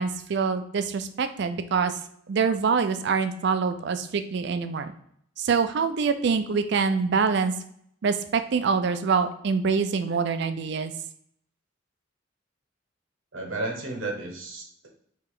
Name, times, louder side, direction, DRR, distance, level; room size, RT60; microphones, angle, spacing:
voice 1, 0.0-1.9 2.3-4.9 5.4-7.5 8.0-10.9, right 5 dB, 60° right, 9 dB, 0.4 m, -25 dB
voice 2, 13.3-14.9, right 2 dB, 80° right, 1 dB, 1.1 m, -33 dB
3.2 x 2.8 x 3.6 m, 0.68 s
head